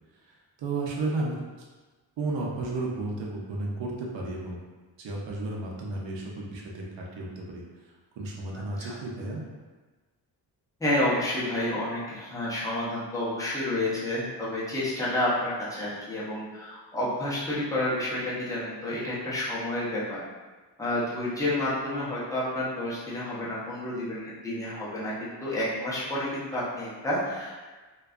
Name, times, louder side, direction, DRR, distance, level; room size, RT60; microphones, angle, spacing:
voice 1, 0.6-1.3 2.2-4.6 5.0-7.6 8.2-9.4, right 2 dB, 85° right, -2 dB, 0.6 m, -33 dB
voice 2, 10.8-20.2 20.8-27.5, left 1 dB, 10° left, -8 dB, 0.5 m, -30 dB
2.6 x 2.2 x 2.3 m, 1.3 s
wide cardioid pair, 170°, 43 cm